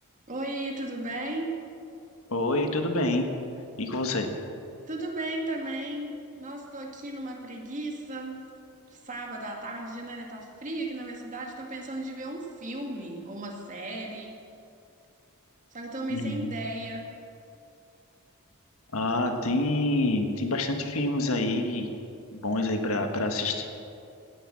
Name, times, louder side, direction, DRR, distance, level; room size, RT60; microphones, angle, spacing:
voice 1, 0.3-1.6 4.9-8.5 8.9-14.4 15.7-17.1, right 1 dB, 35° right, 1 dB, 2.1 m, -35 dB
voice 2, 2.3-3.3 3.8-4.3 16.1-16.6 18.9-21.9 22.3-23.7, left 2 dB, 70° left, 5 dB, 1.5 m, -27 dB
17.0 x 10.0 x 7.6 m, 2.6 s
head